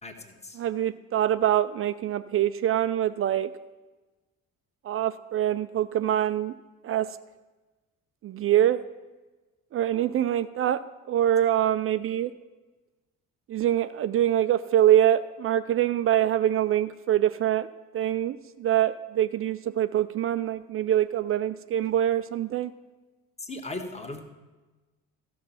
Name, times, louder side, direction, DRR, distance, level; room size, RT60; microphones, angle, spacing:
voice 1, 0.0-0.6 23.4-24.2, left 2 dB, 15° left, 4 dB, 1.5 m, -37 dB
voice 2, 0.6-3.5 4.8-6.5 6.8-7.2 8.2-8.8 9.7-12.3 13.5-17.7 17.9-22.7, right 11 dB, 35° right, 13 dB, 0.4 m, -24 dB
14.0 x 6.0 x 5.7 m, 1.2 s
figure-of-eight pair, 50°, 43 cm